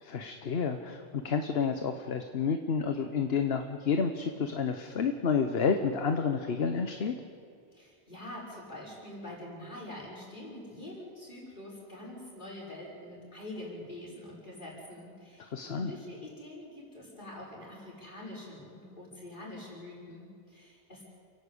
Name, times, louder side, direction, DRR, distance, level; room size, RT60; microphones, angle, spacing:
voice 1, 0.0-7.1 15.5-15.9, left 6 dB, 75° left, 7 dB, 1.2 m, -30 dB
voice 2, 7.7-21.0, left 1 dB, 55° left, -4 dB, 6.4 m, -45 dB
30.0 x 11.5 x 8.5 m, 2.3 s
omnidirectional pair, 1.0 m